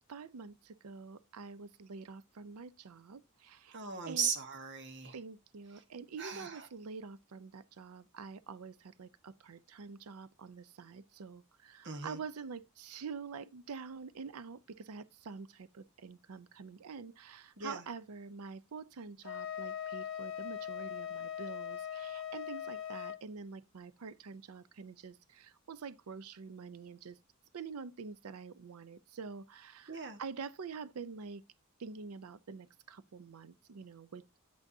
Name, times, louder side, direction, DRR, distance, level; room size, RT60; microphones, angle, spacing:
voice 1, 0.1-3.8 4.1-4.3 5.1-27.2 27.5-31.4 31.8-34.2, right 5 dB, 90° right, 0.5 m, -46 dB
voice 2, 3.7-5.1 5.8-5.9 6.2-6.7 11.8-12.2 17.6-17.8 29.9-30.2, right 6 dB, 55° right, 1.2 m, -38 dB
Wind instrument woodwind instrument, 19.2-23.2, left 9 dB, 65° left, 0.6 m, -40 dB
9.3 x 8.3 x 2.6 m
head